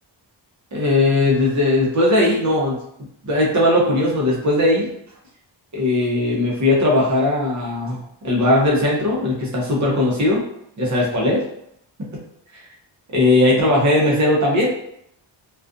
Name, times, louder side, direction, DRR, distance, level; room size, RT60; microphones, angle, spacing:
voice 1, 0.7-2.8 3.2-4.9 5.7-8.0 8.2-10.4 10.8-11.4 13.1-14.7, left 1 dB, 40° right, -4 dB, 0.8 m, -18 dB
2.4 x 2.3 x 2.4 m, 0.73 s
wide cardioid pair, 135°, 45 cm